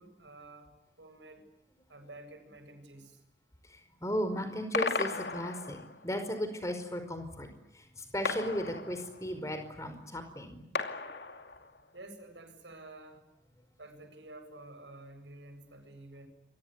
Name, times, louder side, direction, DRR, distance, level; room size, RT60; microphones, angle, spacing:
voice 1, 0.0-1.5 1.9-3.2 11.9-13.3 13.8-16.3, right 2 dB, 90° right, 7 dB, 7.9 m, -50 dB
voice 2, 3.6-7.5 7.7-10.6, equal, 15° left, 7 dB, 5.0 m, -36 dB
sound 1, 4.7-6.1 8.2-9.4 10.7-11.9, left 4 dB, 75° left, 2.6 m, -36 dB
29.0 x 24.0 x 8.2 m, 0.88 s
head